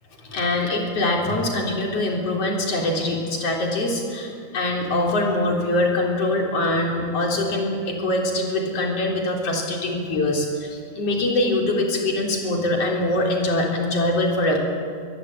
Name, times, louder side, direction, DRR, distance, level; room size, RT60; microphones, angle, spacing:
voice 1, 0.2-14.6, left 1 dB, 55° left, 0 dB, 4.8 m, -23 dB
22.0 x 21.0 x 9.0 m, 2.2 s
omnidirectional pair, 3.4 m